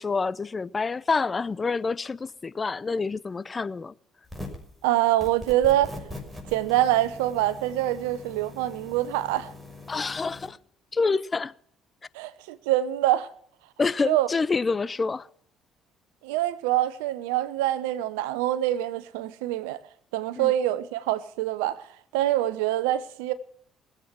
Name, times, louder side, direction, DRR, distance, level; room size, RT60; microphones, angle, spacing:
voice 1, 0.0-3.9 9.9-10.6 10.9-11.5 13.8-15.3 20.4-20.5, left 4 dB, 30° left, 0.7 m, -27 dB
sound 1, 4.2-4.7 5.2-10.5, left 1 dB, 5° right, 6.2 m, -41 dB
voice 2, 4.8-6.0 6.5-9.5 12.1-13.3 14.0-14.3 16.2-19.8 20.1-21.8 22.1-23.3, right 14 dB, 80° right, 0.9 m, -25 dB
20.5 x 8.3 x 7.3 m
hypercardioid pair, 55°, 0 cm